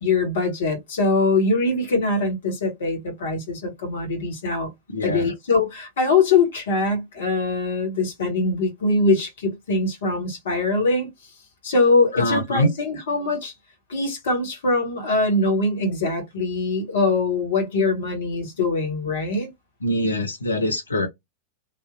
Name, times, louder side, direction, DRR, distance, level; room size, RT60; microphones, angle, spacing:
voice 1, 0.0-4.7 5.0-11.1 11.6-13.5 13.9-19.5, left 3 dB, 60° left, 1.3 m, -22 dB
voice 2, 4.9-5.3 12.1-12.7 19.8-21.1, left 1 dB, 80° left, 0.5 m, -23 dB
3.4 x 2.4 x 2.5 m
figure-of-eight pair, 90°, 0 cm